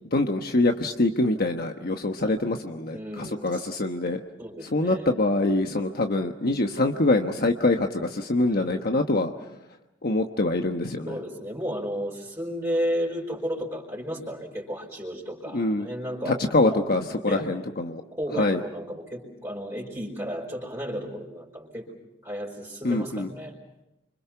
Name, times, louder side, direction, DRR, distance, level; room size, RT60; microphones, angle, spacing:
voice 1, 0.1-4.2 4.7-9.3 10.0-11.1 15.5-15.9 16.3-18.0 18.4-18.6 22.8-23.3, left 2 dB, 55° left, 4 dB, 1.2 m, -24 dB
voice 2, 2.9-3.7 4.4-5.1 8.5-9.2 11.1-16.8 17.2-17.5 18.1-21.9 22.2-23.6, equal, 15° right, -4 dB, 4.9 m, -33 dB
30.0 x 26.0 x 5.9 m, 0.92 s
head